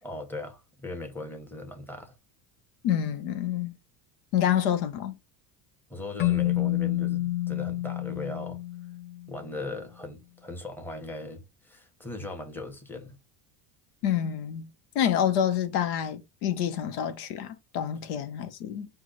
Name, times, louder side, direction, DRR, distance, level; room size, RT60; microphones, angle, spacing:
voice 1, 0.0-2.1 5.9-8.6 9.3-13.2, left 2 dB, 5° left, 1.2 m, -39 dB
voice 2, 2.8-3.7 4.3-5.2 14.0-14.7 14.9-18.9, left 9 dB, 80° left, 0.9 m, -27 dB
Keyboard (musical), 6.2-9.4, left 16 dB, 25° left, 0.4 m, -28 dB
4.7 x 2.4 x 4.0 m
supercardioid pair, 105°, 46 cm